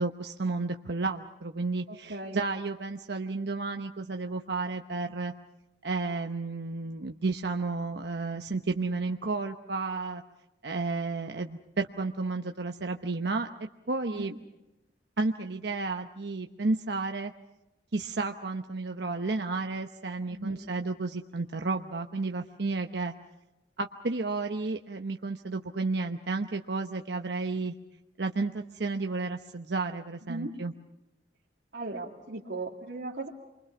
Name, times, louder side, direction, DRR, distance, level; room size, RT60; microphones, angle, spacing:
voice 1, 0.0-5.3 5.8-10.2 10.6-13.5 13.9-14.3 15.2-17.3 17.9-23.1 23.8-27.8 28.2-30.7, right 3 dB, 75° right, 4 dB, 0.9 m, -32 dB
voice 2, 1.9-2.4 14.1-14.2 20.3-20.6 30.3-30.5 31.7-33.3, right 2 dB, 90° right, -5 dB, 2.4 m, -37 dB
28.5 x 24.0 x 6.0 m, 0.97 s
head